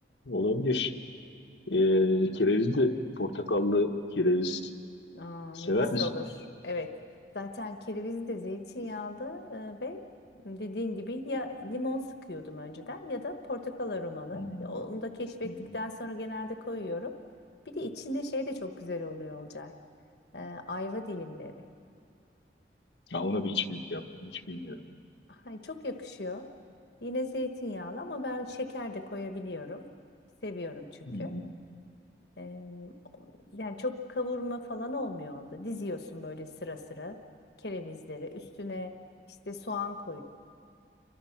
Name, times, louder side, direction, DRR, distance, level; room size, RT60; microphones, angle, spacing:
voice 1, 0.2-0.9 1.7-4.6 5.5-6.1 14.3-14.8 15.4-15.7 23.1-24.8 31.1-31.5, left 2 dB, 85° left, 2 dB, 1.3 m, -28 dB
voice 2, 5.1-5.7 6.0-6.2 6.6-6.9 7.3-10.0 10.4-17.1 17.6-19.7 20.3-21.5 25.3-26.4 27.0-29.8 30.4-30.9 31.2-31.3 32.4-33.2 33.5-37.1 37.6-38.9 39.5-40.2, left 2 dB, 65° left, 6 dB, 1.3 m, -36 dB
28.5 x 24.5 x 5.9 m, 2.5 s
head